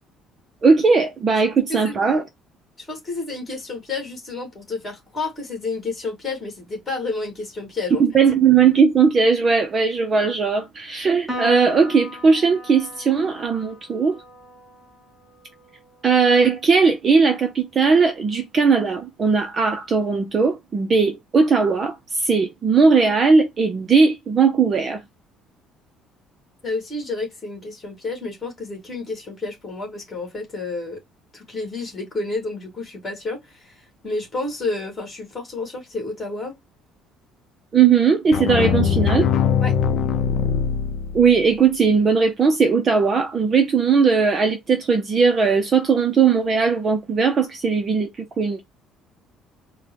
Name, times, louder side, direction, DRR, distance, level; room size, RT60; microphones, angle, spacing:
voice 1, 0.6-2.2 8.0-14.2 16.0-25.0 37.7-39.3 41.1-48.6, right 5 dB, 25° right, 0.5 m, -18 dB
voice 2, 2.8-8.0 26.6-31.0 31.3-33.8 34.0-36.6 39.6-39.7, left 3 dB, 15° left, 2.1 m, -30 dB
Piano, 11.3-18.0, equal, 5° right, 1.0 m, -39 dB
sound 1, 38.3-41.4, left 7 dB, 50° left, 0.6 m, -21 dB
4.3 x 2.1 x 3.0 m
cardioid pair, 170°, 0 cm